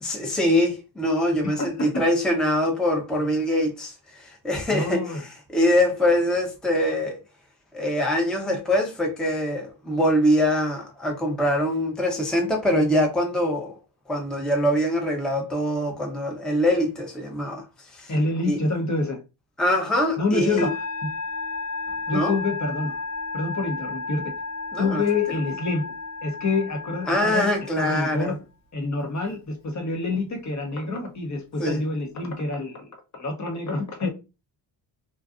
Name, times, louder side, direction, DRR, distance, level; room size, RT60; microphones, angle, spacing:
voice 1, 0.0-5.2 5.5-7.2 7.7-13.8 14.1-17.6 17.9-18.1 18.5-18.6 19.6-20.7 22.1-22.3 24.7-25.0 27.1-28.3 31.6-31.8, left 1 dB, ahead, 0.6 m, -23 dB
voice 2, 1.4-2.0 4.7-5.2 18.1-19.2 20.2-21.1 22.1-22.9 23.3-24.3 24.8-25.9 26.2-27.5 27.8-28.4 28.7-34.1, left 3 dB, 35° left, 0.8 m, -27 dB
Musical instrument, 20.6-28.2, left 3 dB, 80° left, 0.9 m, -33 dB
2.5 x 2.2 x 2.4 m
supercardioid pair, 65°, 48 cm